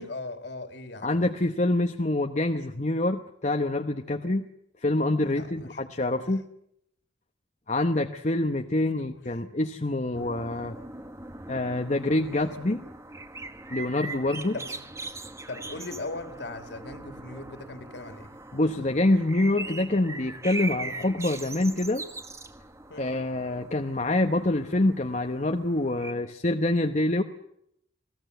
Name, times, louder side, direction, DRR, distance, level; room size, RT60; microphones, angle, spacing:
voice 1, 0.0-1.2 5.2-5.8 9.0-9.1 14.5-14.8 15.5-18.3 22.9-23.1, left 2 dB, 55° left, 8 dB, 2.6 m, -39 dB
voice 2, 1.0-4.5 4.8-6.4 7.7-10.7 11.5-12.8 13.7-14.5 18.5-22.0 23.0-27.2, left 2 dB, 35° left, 4 dB, 1.0 m, -26 dB
sound 1, 10.1-26.1, right 2 dB, 15° right, 1.2 m, -41 dB
28.0 x 18.0 x 8.0 m, 0.76 s
head